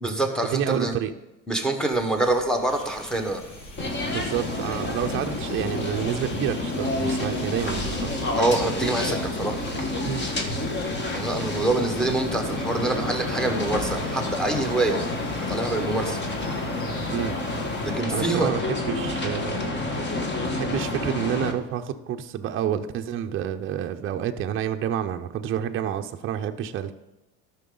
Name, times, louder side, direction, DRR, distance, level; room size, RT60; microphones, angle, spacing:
voice 1, 0.0-0.9 1.5-3.4 8.4-9.6 11.1-15.0 15.5-16.2 17.8-18.5, right 2 dB, ahead, 4 dB, 1.2 m, -25 dB
voice 2, 0.5-1.1 4.1-8.2 10.0-10.3 17.1-17.4 18.1-19.7 20.5-26.9, right 9 dB, 35° right, 6 dB, 0.6 m, -29 dB
sound 1, 1.9-12.4, equal, 45° left, 3.7 m, -46 dB
sound 2, 2.7-17.9, left 2 dB, 60° left, 2.5 m, -46 dB
sound 3, 3.8-21.5, left 2 dB, 30° left, 1.3 m, -29 dB
12.5 x 5.9 x 3.9 m, 1.0 s
supercardioid pair, 115°, 39 cm